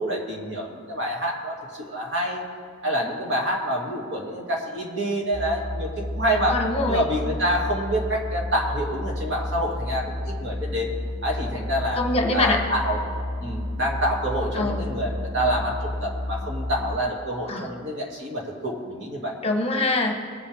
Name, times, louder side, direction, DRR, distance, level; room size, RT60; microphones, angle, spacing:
voice 1, 0.0-2.4 2.8-6.6 6.9-10.9 11.2-12.0 12.3-19.3, equal, 60° right, -1 dB, 2.4 m, -27 dB
sound 1, 5.3-17.0, left 1 dB, 10° right, 0.9 m, -31 dB
voice 2, 6.5-7.0 12.0-12.6 14.5-14.8 17.5-17.7 19.4-20.2, left 2 dB, 30° left, 3 dB, 1.2 m, -24 dB
21.0 x 8.5 x 3.5 m, 2.2 s
head